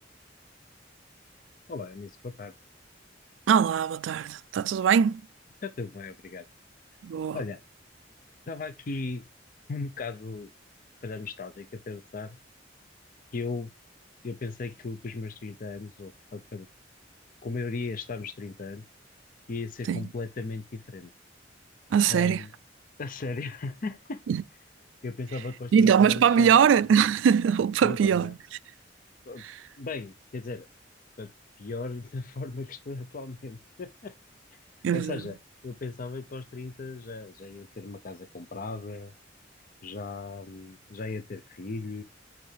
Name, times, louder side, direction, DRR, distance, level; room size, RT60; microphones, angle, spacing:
voice 1, 1.7-2.5 5.6-6.5 7.3-7.6 8.5-9.2 9.7-10.5 11.0-12.4 13.3-13.7 14.2-16.7 17.4-18.8 19.5-21.1 22.1-22.5 23.0-24.2 25.0-26.5 27.8-28.4 29.3-29.4 29.8-30.7 31.2-31.3 31.6-34.1 34.5-34.6 34.9-35.4 35.6-39.1 39.8-42.0, left 3 dB, 45° left, 0.5 m, -37 dB
voice 2, 3.5-5.2 7.0-7.4 19.9-20.1 21.9-22.4 24.3-24.4 25.7-28.3 34.8-35.2, right 7 dB, 85° right, 0.3 m, -22 dB
7.8 x 4.6 x 3.2 m
head